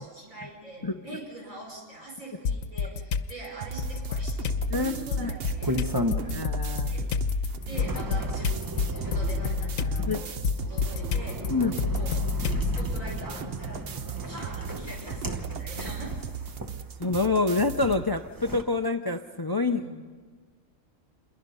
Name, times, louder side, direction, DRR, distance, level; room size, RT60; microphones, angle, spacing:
voice 1, 0.0-5.9 6.8-7.1 7.7-8.6 8.9-11.4 11.9-12.1 12.7-16.1 19.6-20.0, right 2 dB, 80° right, -3 dB, 6.0 m, -42 dB
sound 1, 2.4-3.3 3.8-13.0, left 5 dB, 85° left, 1.2 m, -29 dB
sound 2, 3.6-18.1, right 7 dB, 55° right, 1.0 m, -38 dB
voice 2, 4.7-5.3 6.3-6.9 10.0-10.2 11.5-11.7 17.0-19.8, left 3 dB, 30° left, 8 dB, 0.4 m, -27 dB
sound 3, 5.4-6.6 7.0-17.3 17.9-18.6, equal, 15° right, 1.0 m, -35 dB
27.5 x 22.0 x 5.6 m, 1.5 s
omnidirectional pair, 1.4 m